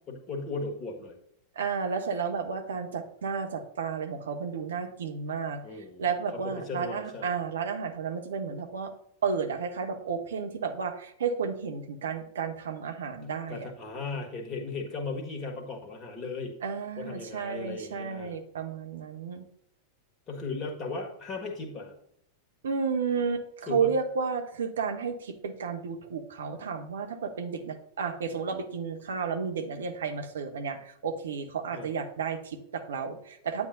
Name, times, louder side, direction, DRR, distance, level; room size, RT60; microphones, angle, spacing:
voice 1, 0.1-1.2 5.6-6.0 6.6-7.3 13.5-16.5 17.0-18.4 20.3-21.9 23.7-23.9 31.7-31.9, left 3 dB, 30° left, 3 dB, 1.7 m, -36 dB
voice 2, 1.5-5.6 6.0-8.9 9.2-13.7 16.6-19.4 22.6-33.7, right 5 dB, 65° right, 6 dB, 1.0 m, -32 dB
9.6 x 8.9 x 2.7 m, 0.72 s
figure-of-eight pair, 90°, 0 cm